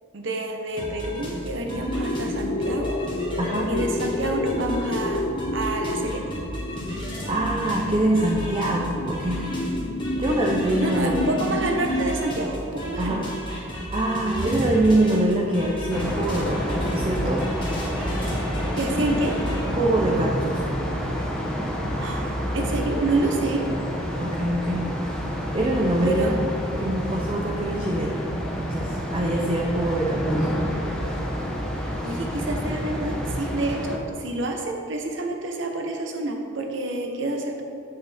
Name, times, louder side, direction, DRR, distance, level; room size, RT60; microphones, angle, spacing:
voice 1, 0.1-3.0 3.7-6.3 10.8-13.2 18.7-19.4 22.0-23.7 26.0-26.3 31.8-37.6, right 2 dB, 60° right, 3 dB, 0.9 m, -28 dB
sound 1, 0.8-19.6, equal, 25° left, 1.6 m, -33 dB
sound 2, 1.7-12.1, left 1 dB, 45° left, 0.4 m, -30 dB
voice 2, 3.4-3.7 7.3-9.4 10.1-11.4 13.0-13.3 13.9-17.4 19.7-20.6 24.2-24.9 25.5-26.4 26.8-28.2 28.6-30.5, right 1 dB, 25° right, -2 dB, 0.6 m, -24 dB
sound 3, 15.9-34.0, equal, 5° left, 0.9 m, -28 dB
8.8 x 6.8 x 3.5 m, 2.6 s
head